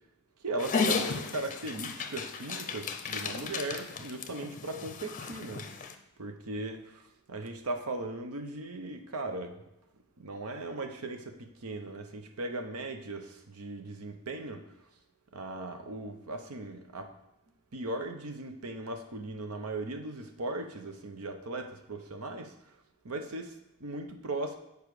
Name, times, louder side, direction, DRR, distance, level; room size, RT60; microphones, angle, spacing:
voice 1, 0.4-5.9 6.2-9.6 10.2-14.6 15.3-17.1 17.7-22.5 23.0-24.6, right 2 dB, 80° right, 5 dB, 0.8 m, -38 dB
Dog, 0.6-5.9, left 5 dB, 35° left, 0.6 m, -34 dB
7.0 x 4.8 x 4.8 m, 0.89 s
head